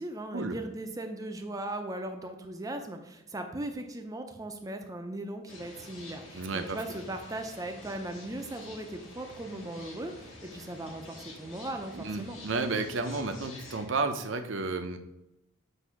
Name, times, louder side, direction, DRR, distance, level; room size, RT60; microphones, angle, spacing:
voice 1, 0.0-12.4, right 1 dB, 20° right, 5 dB, 0.5 m, -38 dB
sound 1, 5.5-13.9, left 2 dB, 90° left, 1.8 m, -48 dB
voice 2, 6.3-6.8 11.9-15.0, right 3 dB, 70° right, 7 dB, 0.7 m, -32 dB
8.0 x 2.7 x 5.8 m, 0.88 s
head